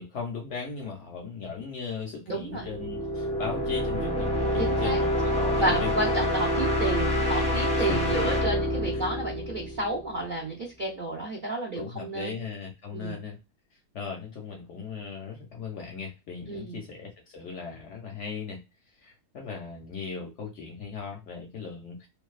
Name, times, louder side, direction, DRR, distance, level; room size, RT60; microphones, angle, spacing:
voice 1, 0.0-5.9 7.8-8.3 8.9-9.1 11.7-13.4 13.9-18.6 19.0-22.1, left 5 dB, 65° left, 1 dB, 0.7 m, -38 dB
voice 2, 2.3-2.7 4.6-5.0 5.6-12.4 12.9-13.2 16.5-16.8, right 2 dB, 80° right, -2 dB, 0.4 m, -31 dB
sound 1, 2.5-10.2, equal, 10° left, 0.3 m, -27 dB
2.6 x 2.3 x 2.3 m, 0.25 s
omnidirectional pair, 1.7 m